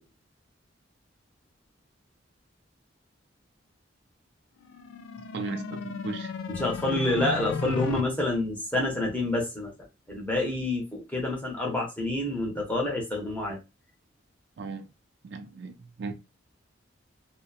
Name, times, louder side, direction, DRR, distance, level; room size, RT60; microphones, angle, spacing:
sound 1, 4.7-8.0, left 5 dB, 80° left, 0.3 m, -35 dB
voice 1, 5.3-6.3 14.6-14.9 15.2-16.1, right 4 dB, 60° right, 0.4 m, -36 dB
voice 2, 6.5-9.7 10.1-13.6, left 2 dB, 10° left, 0.8 m, -28 dB
2.8 x 2.2 x 2.3 m
head